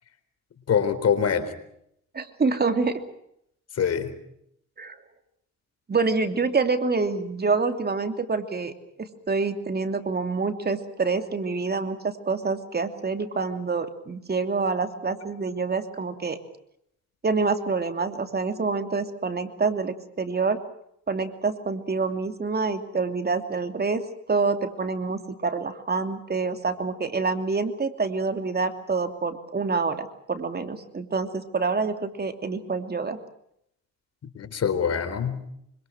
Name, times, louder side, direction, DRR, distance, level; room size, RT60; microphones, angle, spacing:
voice 1, 0.7-1.5 3.8-4.1 34.3-35.4, left 7 dB, 55° left, 12 dB, 3.9 m, -24 dB
voice 2, 2.1-3.0 4.8-5.0 5.9-8.7 9.0-16.4 17.2-20.6 21.1-24.0 24.3-33.2, right 4 dB, 30° right, 7 dB, 2.8 m, -27 dB
26.0 x 25.0 x 6.1 m, 0.74 s
cardioid pair, 90°, 30 cm